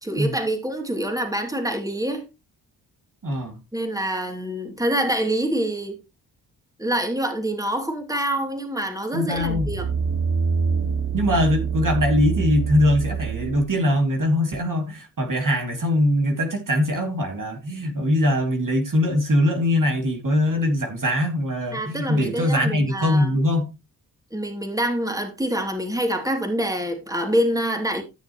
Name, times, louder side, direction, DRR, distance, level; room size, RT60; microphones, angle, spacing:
voice 1, 0.0-2.3 3.7-6.0 6.8-9.9 21.7-23.3 24.3-28.0, right 1 dB, 10° right, 3.0 m, -26 dB
voice 2, 3.2-3.6 9.1-9.7 11.1-23.7, left 1 dB, 45° right, 2.7 m, -22 dB
sound 1, 9.4-13.7 14.2-14.3, right 5 dB, 60° right, 3.0 m, -25 dB
14.0 x 6.6 x 3.1 m
supercardioid pair, 45°, 44 cm